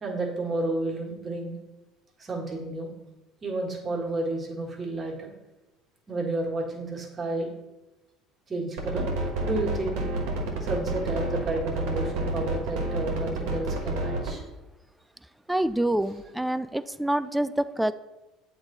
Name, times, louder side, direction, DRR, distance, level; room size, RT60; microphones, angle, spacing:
voice 1, 0.0-1.5 2.2-2.9 3.4-5.3 6.1-7.5 8.5-9.1 9.4-10.0 10.6-14.4, right 2 dB, 30° right, -1 dB, 1.7 m, -31 dB
sound 1, 8.8-14.3, right 2 dB, 75° right, 1.2 m, -29 dB
voice 2, 15.5-17.9, right 1 dB, 5° right, 14 dB, 0.3 m, -26 dB
7.9 x 3.2 x 4.0 m, 1.0 s
supercardioid pair, 85°, 0 cm